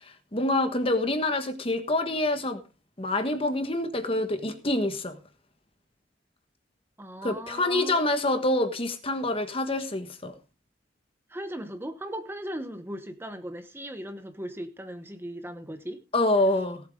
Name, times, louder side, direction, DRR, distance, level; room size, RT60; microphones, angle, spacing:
voice 1, 0.3-2.6 3.0-5.2 7.2-10.3 16.1-16.8, left 2 dB, 30° left, 1.4 m, -26 dB
voice 2, 7.0-8.4 11.3-16.0, right 1 dB, 10° right, 1.0 m, -38 dB
18.0 x 7.9 x 3.7 m
head